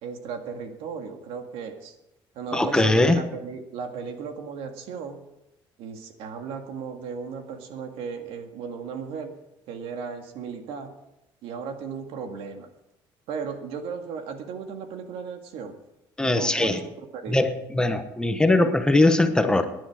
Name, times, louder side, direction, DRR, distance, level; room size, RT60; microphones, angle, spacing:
voice 1, 0.0-1.9 2.4-5.2 5.8-9.4 9.7-11.0 11.4-12.7 13.3-15.8 16.3-17.5, right 6 dB, 80° right, 5 dB, 2.0 m, -36 dB
voice 2, 2.5-3.2 16.2-16.8 17.3-19.7, left 2 dB, 10° left, 7 dB, 0.9 m, -21 dB
18.0 x 10.5 x 4.9 m, 0.90 s
cardioid pair, 155°, 9 cm